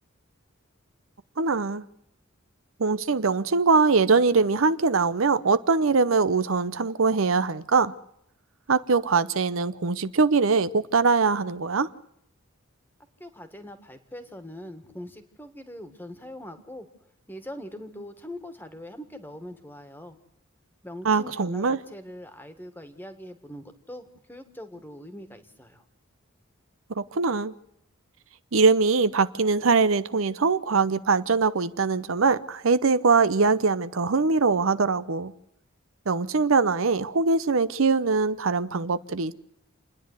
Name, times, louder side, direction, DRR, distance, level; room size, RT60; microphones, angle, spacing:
voice 1, 1.4-1.8 2.8-7.9 8.7-11.9 21.0-21.8 27.0-27.5 28.5-35.3 36.1-39.3, right 4 dB, 70° right, 0.7 m, -22 dB
voice 2, 13.2-16.9 17.3-20.2 20.8-25.8, left 1 dB, 10° left, 1.7 m, -42 dB
28.0 x 10.5 x 9.6 m
head